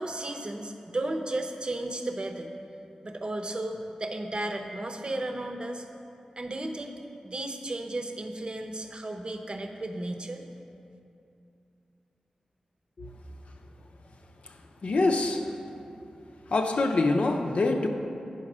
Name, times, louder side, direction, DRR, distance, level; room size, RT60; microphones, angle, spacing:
voice 1, 0.0-2.5 3.0-5.8 6.4-6.9 7.2-10.4, right 1 dB, 45° right, 4 dB, 0.7 m, -34 dB
voice 2, 14.4-15.6 16.5-17.9, left 2 dB, 65° left, 4 dB, 0.6 m, -26 dB
8.7 x 4.3 x 6.1 m, 2.6 s
cardioid pair, 45°, 2 cm